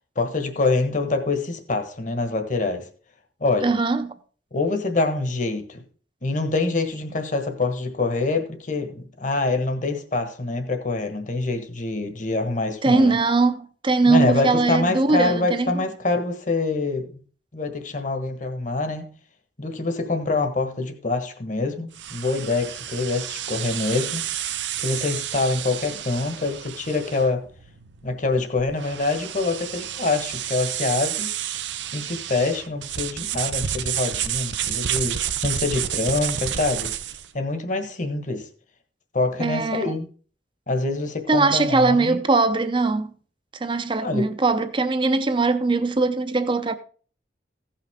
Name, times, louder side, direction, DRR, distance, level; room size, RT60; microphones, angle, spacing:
voice 1, 0.1-2.9 3.4-3.7 4.5-5.8 6.2-13.2 14.1-17.2 17.5-19.1 19.6-24.5 24.8-27.4 28.0-31.3 31.9-36.9 37.3-38.5 39.1-40.1 40.7-42.2 44.0-44.2, left 3 dB, 45° left, 1.3 m, -25 dB
voice 2, 3.6-4.1 12.8-15.8 39.4-39.9 41.3-43.1 43.6-46.8, right 3 dB, 30° right, 0.7 m, -21 dB
sound 1, 21.9-37.3, right 10 dB, 80° right, 0.6 m, -30 dB
16.0 x 5.8 x 3.6 m
head